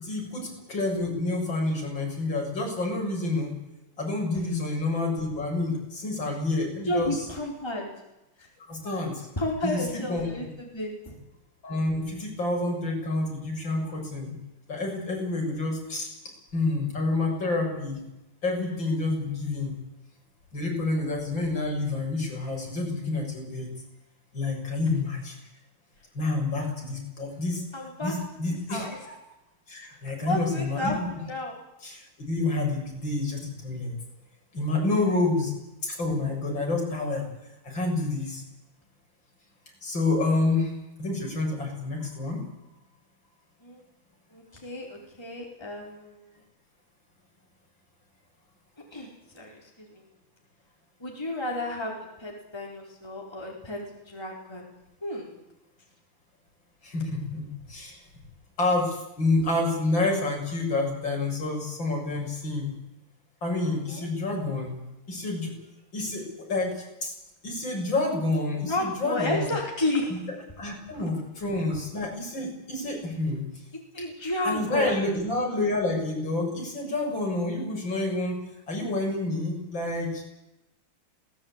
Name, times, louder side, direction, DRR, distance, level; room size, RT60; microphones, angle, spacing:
voice 1, 0.0-3.5 4.0-7.2 8.6-9.3 9.6-9.8 10.1-10.3 11.6-14.4 14.7-16.1 16.5-18.0 18.4-19.7 20.5-23.7 24.3-25.4 26.1-27.6 28.0-29.2 29.7-31.1 31.8-33.9 34.5-35.5 35.8-37.3 37.6-38.4 39.8-40.7 41.0-42.5 56.8-58.0 58.6-62.8 63.4-64.8 65.1-65.5 65.9-66.2 66.5-67.1 67.4-69.5 70.1-70.2 70.6-73.4 74.4-78.4 78.7-80.2, left 2 dB, 60° left, 0 dB, 7.5 m, -28 dB
voice 2, 6.8-7.9 8.4-8.5 9.4-11.2 27.7-28.2 28.5-29.0 30.2-31.6 43.6-43.8 44.3-46.3 48.9-50.1 51.0-54.7 55.0-55.3 63.9-64.1 68.6-70.2 70.9-71.0 73.7-75.0, left 1 dB, 10° left, -1 dB, 4.4 m, -32 dB
21.0 x 19.0 x 9.0 m, 0.92 s
omnidirectional pair, 2.3 m